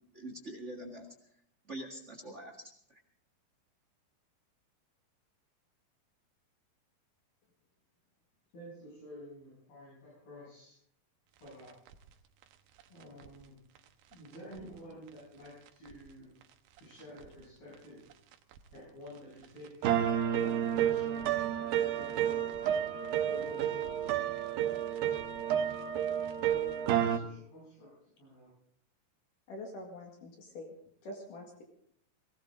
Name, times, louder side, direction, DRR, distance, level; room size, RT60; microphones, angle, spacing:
voice 1, 0.1-1.0 1.7-3.0, right 1 dB, 35° right, 3 dB, 1.2 m, -44 dB
voice 2, 8.5-10.8 11.4-11.7 12.9-13.6 14.1-16.3 16.8-18.0 18.7-19.9 20.4-22.6 23.3-24.6 26.4-27.9 28.2-28.5, equal, 80° left, -8 dB, 9.3 m, -51 dB
sound 1, 11.9-12.0 13.2-13.3 14.5-14.6 15.9-16.0 17.2-17.3 18.5-18.6 19.8-27.2, right 10 dB, 85° right, 2.8 m, -30 dB
voice 3, 29.5-30.8 31.0-31.6, left 1 dB, 65° left, 2 dB, 3.4 m, -45 dB
20.0 x 17.5 x 3.8 m, 0.67 s
omnidirectional pair, 4.2 m